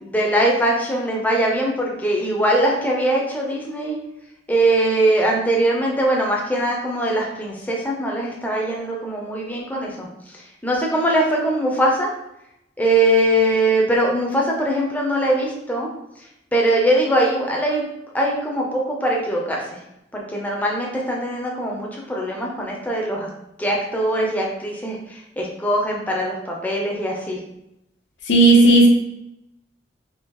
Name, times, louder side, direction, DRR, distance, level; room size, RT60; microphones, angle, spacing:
voice 1, 0.0-4.0 4.5-10.1 10.6-12.1 12.8-15.9 16.5-17.8 18.1-19.6 20.1-23.3 23.6-27.4, right 1 dB, 10° left, -2 dB, 0.6 m, -21 dB
voice 2, 28.3-28.9, right 2 dB, 85° left, 0 dB, 0.8 m, -12 dB
3.6 x 2.9 x 2.9 m, 0.85 s
head